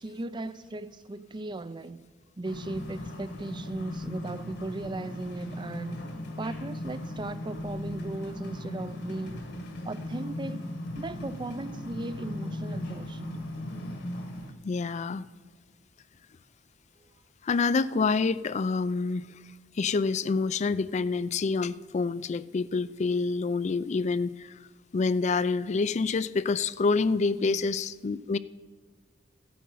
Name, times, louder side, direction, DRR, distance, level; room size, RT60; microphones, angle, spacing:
voice 1, 0.0-2.0 2.4-6.0 6.4-9.4 9.8-10.6 11.0-13.4 27.4-27.7, right 2 dB, 25° right, 0.5 m, -37 dB
sound 1, 2.4-14.5, left 1 dB, 60° left, 1.6 m, -38 dB
voice 2, 14.6-15.2 17.4-19.3 19.8-24.5 24.9-28.4, left 4 dB, 40° left, 0.4 m, -27 dB
15.0 x 8.6 x 5.5 m
head